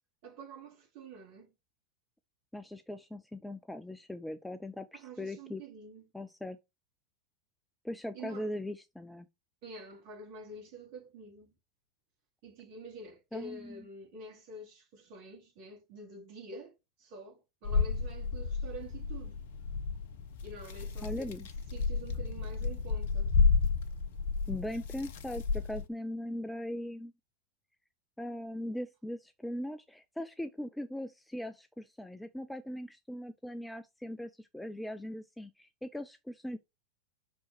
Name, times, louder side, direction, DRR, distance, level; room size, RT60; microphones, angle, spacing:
voice 1, 0.2-1.5 4.9-6.1 8.1-8.5 9.6-11.5 12.4-19.4 20.4-21.3 21.7-23.4, right 2 dB, 45° right, 4.3 m, -47 dB
voice 2, 2.5-5.6 6.1-6.6 7.8-9.3 13.3-13.8 21.0-21.5 24.5-27.1 28.2-36.6, left 1 dB, 5° left, 0.6 m, -40 dB
sound 1, 17.6-25.9, left 5 dB, 55° left, 1.1 m, -31 dB
6.2 x 5.1 x 6.7 m
figure-of-eight pair, 90°, 0 cm